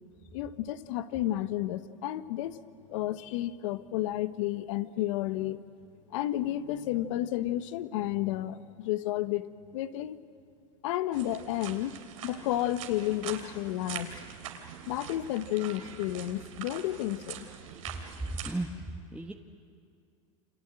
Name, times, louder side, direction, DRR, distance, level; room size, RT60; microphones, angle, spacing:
voice 1, 0.3-2.6 2.9-5.6 6.1-10.2 10.8-12.0 12.2-14.1 14.9-17.5, left 14 dB, 70° left, 11 dB, 1.3 m, -31 dB
sound 1, 11.1-18.5, right 9 dB, 85° right, 3.2 m, -43 dB
voice 2, 18.2-18.7 19.1-19.3, right 2 dB, 5° right, 1 dB, 1.5 m, -33 dB
29.0 x 26.0 x 7.8 m, 2.3 s
hypercardioid pair, 105°, 17 cm